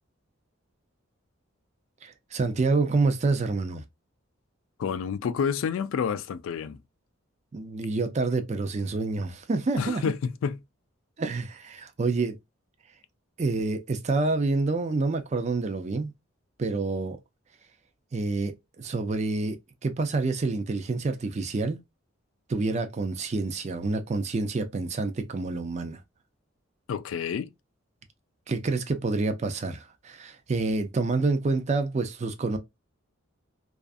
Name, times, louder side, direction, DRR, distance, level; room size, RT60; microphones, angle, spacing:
voice 1, 2.0-3.8 7.5-10.1 11.2-12.4 12.9-13.0 13.4-16.1 16.6-17.2 18.1-21.8 22.5-26.0 28.5-32.6, right 3 dB, 35° right, 0.4 m, -28 dB
voice 2, 4.8-6.8 9.8-10.6 26.9-27.5, left 6 dB, 75° left, 0.3 m, -29 dB
2.5 x 2.4 x 2.3 m
head